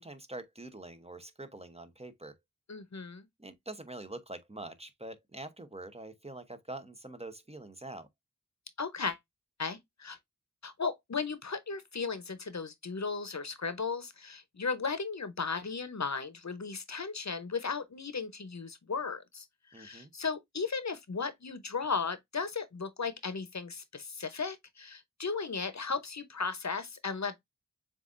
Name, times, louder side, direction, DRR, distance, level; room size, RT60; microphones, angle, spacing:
voice 1, 0.0-2.4 3.4-8.1 19.7-20.1, right 2 dB, 20° right, 0.8 m, -45 dB
voice 2, 2.7-3.3 8.8-9.2 9.6-10.2 10.6-19.5 19.7-27.4, left 5 dB, 55° left, 0.8 m, -36 dB
7.2 x 2.5 x 2.5 m
wide cardioid pair, 45°, 32 cm